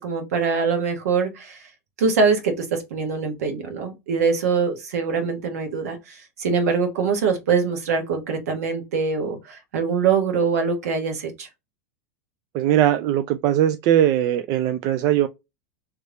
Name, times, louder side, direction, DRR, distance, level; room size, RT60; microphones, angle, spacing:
voice 1, 0.0-1.6 2.0-11.5, right 5 dB, 75° right, 1.4 m, -23 dB
voice 2, 12.5-15.3, right 11 dB, 50° right, 0.4 m, -20 dB
3.3 x 3.2 x 2.6 m
hypercardioid pair, 100°, 8 cm